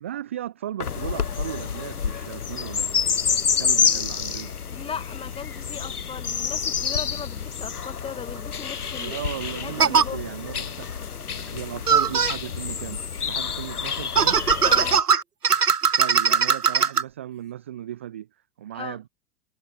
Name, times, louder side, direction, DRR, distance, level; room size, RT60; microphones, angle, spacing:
voice 1, 0.0-2.9 3.5-4.5 9.0-11.0 11.3-14.4 16.0-18.3 18.6-19.1, right 12 dB, 10° right, 0.3 m, -36 dB
sound 1, 0.8-15.0, left 7 dB, 80° left, 1.0 m, -28 dB
voice 2, 4.7-9.2 9.5-10.2 14.6-15.0 18.7-19.0, left 6 dB, 10° left, 2.2 m, -37 dB
sound 2, 8.4-8.5 9.8-10.0 11.9-12.4 14.2-17.0, right 6 dB, 90° right, 0.7 m, -20 dB
figure-of-eight pair, 105°, 45 cm